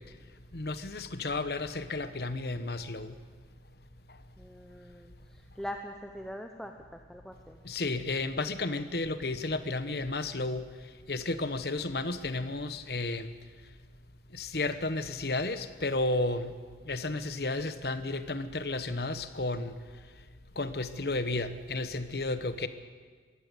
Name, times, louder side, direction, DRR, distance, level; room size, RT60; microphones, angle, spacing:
voice 1, 0.5-3.1 7.6-10.6 11.1-13.3 14.3-16.5 16.8-19.7 20.6-22.7, left 2 dB, 60° left, 11 dB, 1.2 m, -32 dB
voice 2, 4.4-7.6, equal, 5° left, 4 dB, 0.9 m, -43 dB
22.0 x 15.5 x 8.3 m, 1.5 s
head